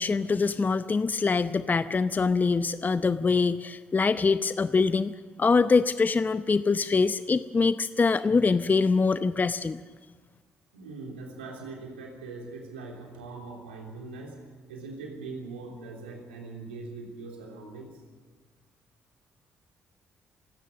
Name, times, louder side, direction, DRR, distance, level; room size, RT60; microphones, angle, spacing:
voice 1, 0.0-9.8, left 4 dB, 30° left, 13 dB, 0.7 m, -24 dB
voice 2, 10.7-14.4 14.7-17.9, right 3 dB, 85° right, 0 dB, 3.3 m, -41 dB
28.0 x 17.5 x 6.6 m, 1.4 s
figure-of-eight pair, 45°, 6 cm